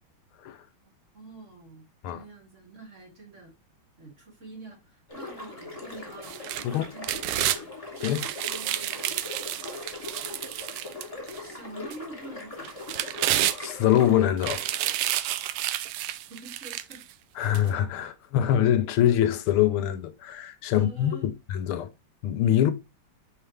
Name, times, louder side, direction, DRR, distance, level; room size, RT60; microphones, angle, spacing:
voice 1, 1.1-3.5 4.0-7.7 8.4-8.9 11.3-12.7 16.3-17.0 20.7-21.3, right 2 dB, 35° right, 2.2 m, -46 dB
sound 1, 5.1-14.3, left 3 dB, 15° left, 2.3 m, -40 dB
sound 2, 6.2-7.6 8.0-11.4 11.9-12.0 12.6-14.0 14.4-17.0 17.5-17.6, right 13 dB, 85° right, 1.5 m, -30 dB
voice 2, 13.6-14.6 17.4-21.1 21.5-21.9 22.2-22.7, left 11 dB, 80° left, 1.5 m, -24 dB
5.7 x 5.3 x 3.3 m
omnidirectional pair, 2.4 m